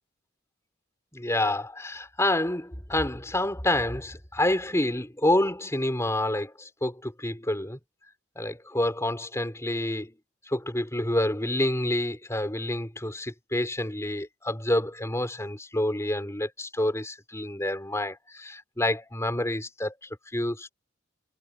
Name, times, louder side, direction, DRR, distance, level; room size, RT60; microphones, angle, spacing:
voice 1, 1.1-7.8 8.4-10.1 10.5-19.9 20.3-20.7, left 1 dB, 15° left, 4.3 m, -28 dB
head